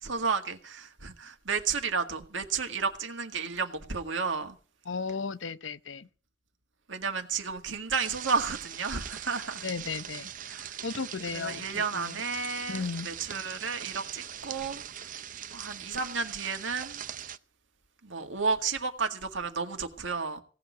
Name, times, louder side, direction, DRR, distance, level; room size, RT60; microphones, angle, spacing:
voice 1, 0.0-4.6 6.9-9.7 10.5-10.8 11.3-15.1 15.5-17.0 18.0-20.4, right 5 dB, 85° right, 1.9 m, -32 dB
voice 2, 4.9-6.1 9.6-10.3 10.8-12.2 12.7-13.1, left 5 dB, 80° left, 0.7 m, -35 dB
sound 1, 8.0-17.4, right 9 dB, 45° right, 0.6 m, -41 dB
17.5 x 6.4 x 9.4 m
head